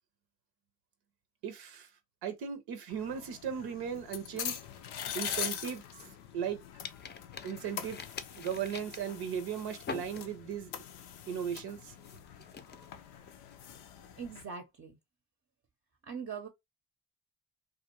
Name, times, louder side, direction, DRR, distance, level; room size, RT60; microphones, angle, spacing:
voice 1, 1.4-1.9 2.2-4.6 5.1-5.8 6.3-6.6 7.4-8.0 8.4-10.7 11.3-11.9, right 8 dB, 80° right, 0.6 m, -37 dB
sound 1, 2.9-14.4, left 9 dB, 85° left, 0.5 m, -43 dB
sound 2, 5.0-6.5 6.8-10.6 11.0-11.3 11.8-14.1, left 5 dB, 30° left, 0.5 m, -46 dB
voice 2, 14.2-15.0 16.0-16.5, right 6 dB, 35° right, 0.6 m, -41 dB
2.4 x 2.2 x 2.8 m
supercardioid pair, 50°, 38 cm